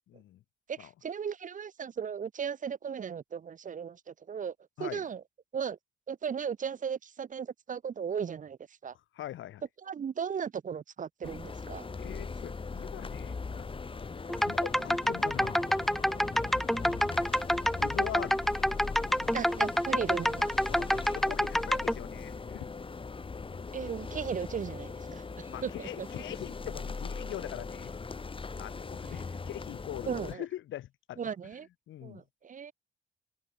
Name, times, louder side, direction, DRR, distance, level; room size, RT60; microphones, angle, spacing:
voice 1, 0.1-0.4 0.8-0.9 4.8-5.1 9.1-9.6 12.0-13.7 14.1-15.8 16.8-17.1 17.8-18.4 19.1-19.4 20.7-22.7 25.3-27.9 28.6-31.3 31.9-32.2, left 13 dB, 75° left, 1.7 m, -42 dB
voice 2, 0.7-4.5 4.8-5.2 5.5-5.8 6.1-8.6 8.8-8.9 9.8-11.9 19.3-20.5 23.7-26.1 30.1-30.4 31.2-31.7 32.0-32.7, right 7 dB, 40° right, 0.9 m, -36 dB
sound 1, 11.2-30.3, left 4 dB, 25° left, 1.6 m, -40 dB
sound 2, 14.3-21.9, equal, ahead, 0.7 m, -28 dB
open air
cardioid pair, 90°, 20 cm